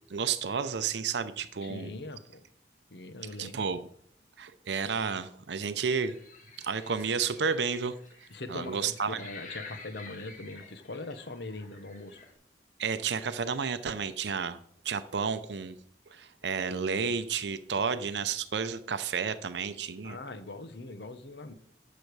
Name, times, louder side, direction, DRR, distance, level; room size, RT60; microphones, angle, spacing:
voice 1, 0.1-2.0 3.4-3.8 4.4-6.1 6.6-8.0 8.5-9.2 12.8-14.6 14.8-15.7 16.1-20.2, right 6 dB, 75° right, 11 dB, 0.6 m, -31 dB
voice 2, 1.6-2.4 2.9-3.7 8.3-12.2 20.0-21.5, left 2 dB, 70° left, 10 dB, 1.0 m, -41 dB
sound 1, 5.7-12.3, left 4 dB, 45° left, 1.6 m, -50 dB
11.5 x 6.7 x 4.7 m, 0.67 s
head